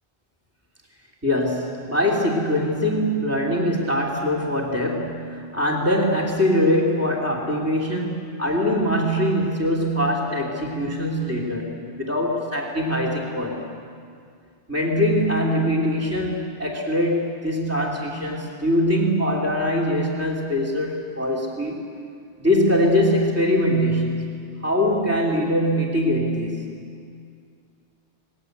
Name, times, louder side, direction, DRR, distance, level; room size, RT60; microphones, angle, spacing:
voice 1, 1.2-13.7 14.7-21.8 22.4-26.7, equal, 10° right, -2 dB, 3.4 m, -22 dB
28.5 x 21.0 x 8.2 m, 2.3 s
omnidirectional pair, 1.1 m